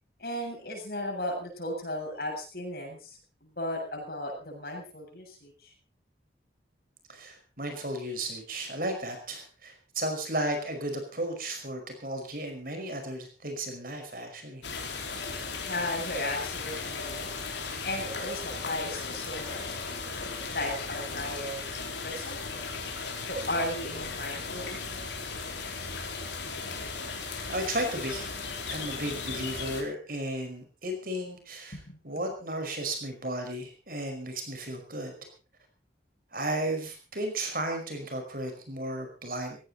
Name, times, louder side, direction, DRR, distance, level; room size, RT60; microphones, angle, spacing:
voice 1, 0.2-5.7 15.5-17.3 17.8-19.9 20.2-22.6 23.3-25.2 31.7-32.0, left 1 dB, 55° left, 1 dB, 7.6 m, -36 dB
voice 2, 7.1-14.6 27.5-28.3 28.7-31.8 32.0-35.2 36.3-39.6, right 1 dB, 50° right, 5 dB, 5.3 m, -34 dB
sound 1, 14.6-29.8, left 4 dB, 80° left, 4.5 m, -36 dB
17.5 x 16.5 x 4.2 m, 0.34 s
head